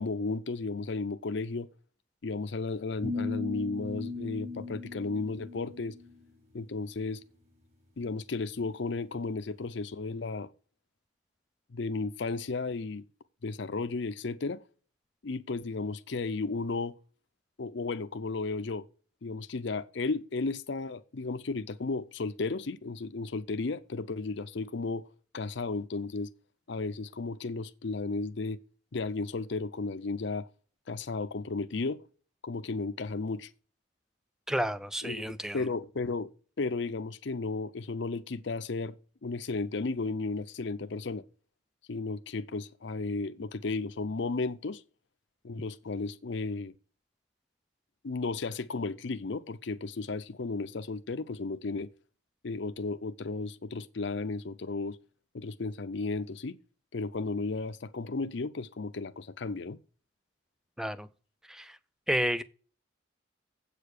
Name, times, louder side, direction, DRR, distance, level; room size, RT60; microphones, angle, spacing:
voice 1, 0.0-1.7 2.2-6.0 6.5-7.2 8.0-10.5 11.7-13.0 13.4-14.6 15.2-17.0 17.6-18.9 19.2-25.1 25.3-26.3 26.7-28.6 28.9-30.5 30.9-32.0 32.4-33.5 35.0-36.3 36.6-39.0 39.2-41.2 41.9-44.8 45.4-46.7 48.0-51.9 52.4-55.0 55.3-56.6 56.9-59.8, left 3 dB, 60° left, 0.6 m, -34 dB
sound 1, 3.0-6.2, left 3 dB, 35° right, 3.1 m, -37 dB
voice 2, 34.5-35.6 60.8-61.1 61.5-61.8 62.1-62.4, equal, 5° right, 0.4 m, -31 dB
8.1 x 6.8 x 6.5 m
head